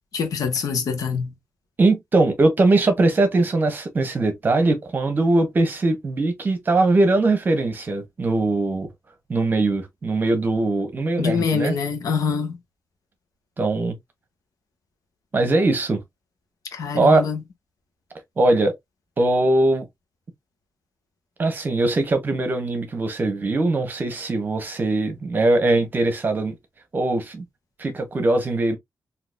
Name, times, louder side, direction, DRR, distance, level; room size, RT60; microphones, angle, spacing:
voice 1, 0.1-1.3 11.2-12.6 16.7-17.4, left 5 dB, 80° left, 1.1 m, -24 dB
voice 2, 1.8-8.9 9.3-11.7 13.6-13.9 15.3-16.0 16.9-17.2 18.4-18.8 19.2-19.8 21.4-26.5 26.9-27.4 27.8-28.8, right 2 dB, 30° right, 1.0 m, -21 dB
4.0 x 2.8 x 2.4 m
wide cardioid pair, 160°, 6 cm